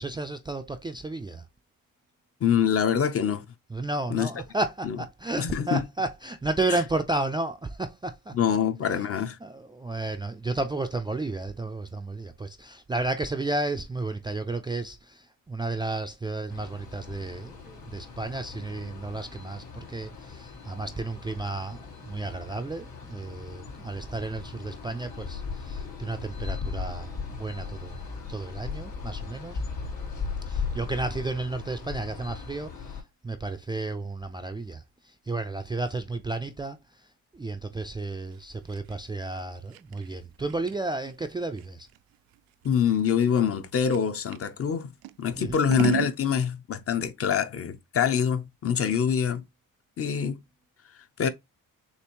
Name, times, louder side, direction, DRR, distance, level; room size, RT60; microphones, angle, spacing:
voice 1, 0.0-1.4 3.7-8.3 9.4-27.9 28.3-29.6 30.5-34.8 35.3-36.8 37.3-41.9 45.4-45.6 48.8-48.9, right 2 dB, 15° right, 0.3 m, -32 dB
voice 2, 2.4-3.4 4.1-4.3 4.8-5.0 5.4-5.8 6.7-6.8 8.3-9.4 42.6-44.9 45.2-49.4 50.0-50.4 51.2-51.3, left 8 dB, 40° left, 0.7 m, -25 dB
sound 1, 16.5-33.0, left 5 dB, 85° left, 3.1 m, -38 dB
Scissors, 38.3-44.5 45.0-46.2, right 16 dB, 85° right, 0.5 m, -35 dB
6.8 x 2.5 x 2.9 m
cardioid pair, 135°, 35 cm